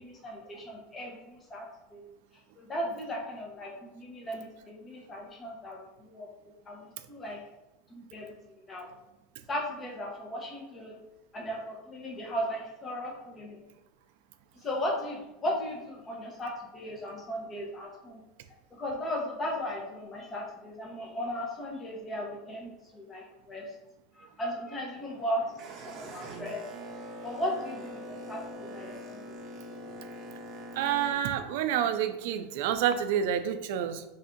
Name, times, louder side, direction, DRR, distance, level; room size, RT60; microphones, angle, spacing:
voice 1, 0.0-2.1 2.5-7.4 7.9-8.9 9.5-11.0 11.3-13.6 14.6-18.2 18.8-23.7 24.2-25.4 25.8-26.7 27.2-29.4, equal, 20° left, -1 dB, 0.8 m, -36 dB
Boat Water vehicle, 24.9-31.1, equal, 35° right, 0.7 m, -43 dB
voice 2, 30.8-34.1, right 9 dB, 70° right, 10 dB, 0.4 m, -28 dB
3.4 x 2.6 x 3.7 m, 0.93 s
supercardioid pair, 145°, 0 cm